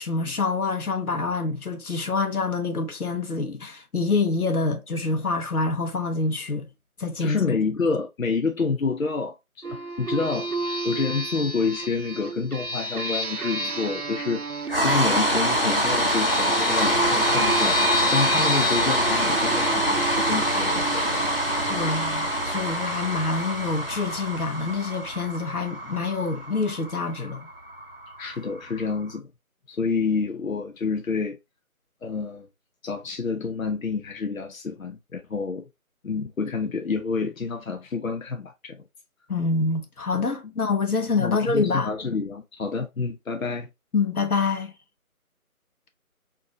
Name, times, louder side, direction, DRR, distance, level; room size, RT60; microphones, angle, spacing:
voice 1, 0.0-6.7 7.0-7.4 21.7-27.5 39.3-42.0 43.9-44.7, left 4 dB, 85° left, 0.9 m, -26 dB
voice 2, 7.2-10.5 10.8-14.4 14.8-17.8 18.1-21.0 28.2-29.3 29.7-31.4 32.0-32.5 32.8-35.6 36.0-38.8 41.2-43.7, left 4 dB, 65° left, 0.6 m, -28 dB
sound 1, 9.6-22.8, right 1 dB, 80° right, 0.6 m, -30 dB
sound 2, 14.7-28.8, equal, 40° right, 0.6 m, -25 dB
4.4 x 2.7 x 2.7 m
figure-of-eight pair, 175°, 44 cm